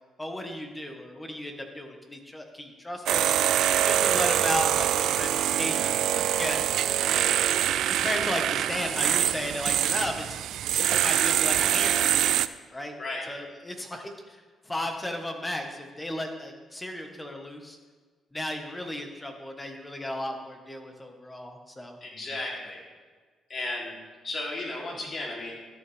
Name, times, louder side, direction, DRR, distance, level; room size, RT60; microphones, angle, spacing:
voice 1, 0.2-3.3 3.8-6.6 7.9-10.4 10.8-12.3 12.7-12.9 13.3-14.4 14.6-17.8 18.3-22.0, left 1 dB, 15° left, 4 dB, 1.5 m, -34 dB
sound 1, 3.1-12.5, right 11 dB, 80° right, 0.3 m, -24 dB
voice 2, 22.0-22.8 23.5-23.9 24.2-25.5, left 2 dB, 45° left, -3 dB, 3.4 m, -34 dB
13.5 x 8.9 x 3.5 m, 1.5 s
cardioid pair, 90°, 0 cm